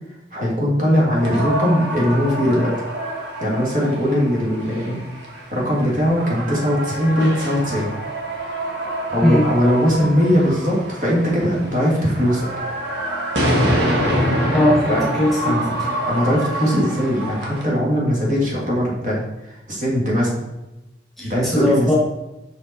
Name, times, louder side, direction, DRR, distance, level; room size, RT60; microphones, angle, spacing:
voice 1, 0.3-2.7 3.4-5.0 5.5-7.9 9.1-12.5 14.9-15.0 15.4-15.7 16.1-20.3 21.2-21.9, equal, 45° right, -4 dB, 1.9 m, -20 dB
sound 1, 1.0-17.6, right 1 dB, 80° right, 1.6 m, -26 dB
voice 2, 14.5-15.6 21.2-21.9, left 1 dB, ahead, -5 dB, 1.6 m, -19 dB
5.8 x 5.1 x 4.1 m, 0.97 s
head